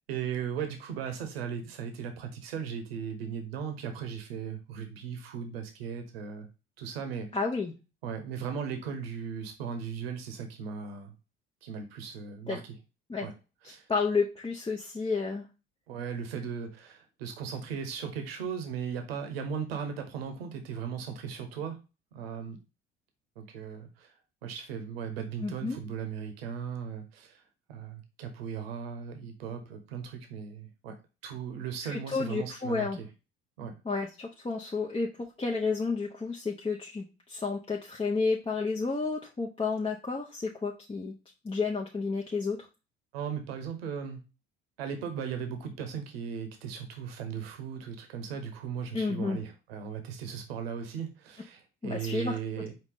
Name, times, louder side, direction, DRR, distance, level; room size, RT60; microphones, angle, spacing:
voice 1, 0.1-6.5 6.8-7.3 8.0-11.1 11.6-12.7 13.2-13.3 13.6-13.8 15.9-21.8 22.1-22.6 23.4-24.1 24.4-27.4 27.7-31.0 31.2-33.1 33.6-33.7 43.1-44.2 44.8-52.7, right 7 dB, 80° right, 0.9 m, -37 dB
voice 2, 7.3-7.7 12.5-12.6 13.1-13.3 13.6-15.4 25.4-25.8 31.9-33.0 33.8-41.1 41.4-42.7 48.9-49.4 51.8-52.6, left 4 dB, 20° left, 0.8 m, -31 dB
4.9 x 2.7 x 3.5 m
hypercardioid pair, 55°, 30 cm